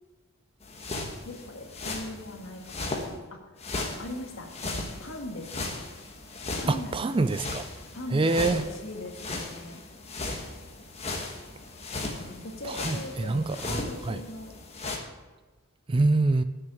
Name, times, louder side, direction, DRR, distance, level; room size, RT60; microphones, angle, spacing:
sound 1, 0.6-3.1 3.6-15.0, left 2 dB, 30° left, 1.3 m, -37 dB
voice 1, 1.2-3.6 4.0-5.8 6.6-7.2 7.9-9.8 12.1-14.5, left 1 dB, 60° left, 2 dB, 1.7 m, -40 dB
voice 2, 6.7-7.7 8.1-8.6 12.6-14.2 15.9-16.4, right 3 dB, 25° right, 12 dB, 0.3 m, -26 dB
8.3 x 6.7 x 8.4 m, 1.2 s
head